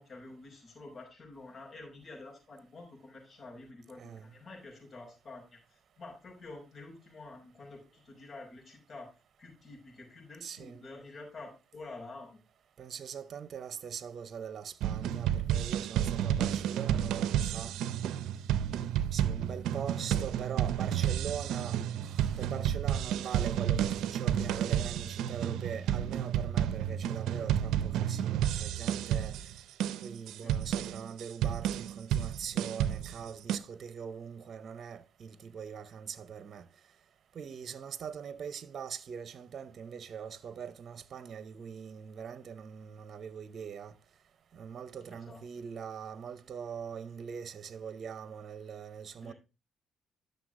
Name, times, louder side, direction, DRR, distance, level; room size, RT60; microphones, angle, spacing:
voice 1, 0.0-9.1 9.4-12.4 30.4-30.6 45.1-45.4 49.2-49.3, left 2 dB, 50° left, 5.4 m, -48 dB
voice 2, 4.0-4.3 10.4-10.8 12.8-17.7 19.1-29.4 30.0-36.7 37.3-43.9 44.5-49.3, right 7 dB, 55° right, 0.8 m, -42 dB
sound 1, 14.8-33.6, right 10 dB, 90° right, 0.5 m, -31 dB
11.5 x 6.7 x 3.7 m
cardioid pair, 90°, 0 cm